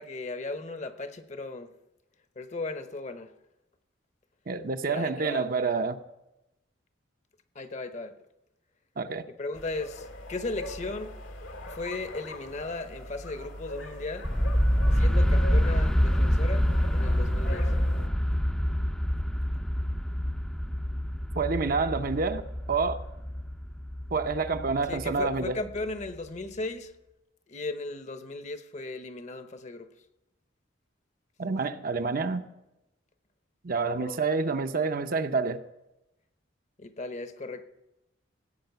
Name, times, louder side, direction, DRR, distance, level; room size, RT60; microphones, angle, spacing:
voice 1, 0.0-1.7 2.4-3.3 4.9-5.5 7.5-8.2 9.3-11.1 11.7-14.3 14.9-17.7 24.9-26.9 27.5-29.9 33.9-34.2 36.8-37.6, left 3 dB, 35° left, 10 dB, 0.8 m, -36 dB
voice 2, 4.5-6.0 9.0-9.2 21.3-23.0 24.1-25.6 31.4-32.5 33.6-35.6, right 4 dB, 45° right, 8 dB, 0.7 m, -28 dB
sound 1, 9.5-18.1, left 1 dB, 80° left, 2.0 m, -42 dB
sound 2, 14.2-26.1, equal, 5° left, 0.5 m, -26 dB
16.0 x 8.7 x 6.8 m, 0.95 s
head